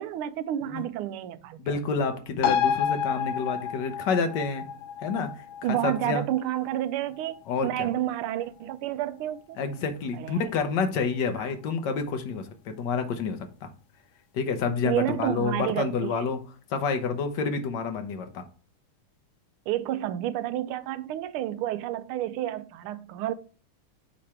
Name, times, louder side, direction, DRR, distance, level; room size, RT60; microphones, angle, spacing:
voice 1, 0.0-1.8 5.6-7.4 7.6-9.6 10.1-10.4 11.4-11.5 14.8-16.2 19.7-23.3, right 12 dB, 80° right, 1.4 m, -30 dB
voice 2, 1.6-4.6 5.0-5.3 5.7-6.2 7.5-7.9 9.6-13.7 14.3-16.4 16.7-18.4, left 5 dB, 60° left, 1.3 m, -28 dB
sound 1, 2.4-9.4 9.7-9.8, left 8 dB, 85° left, 1.6 m, -31 dB
8.5 x 3.2 x 4.3 m
omnidirectional pair, 2.4 m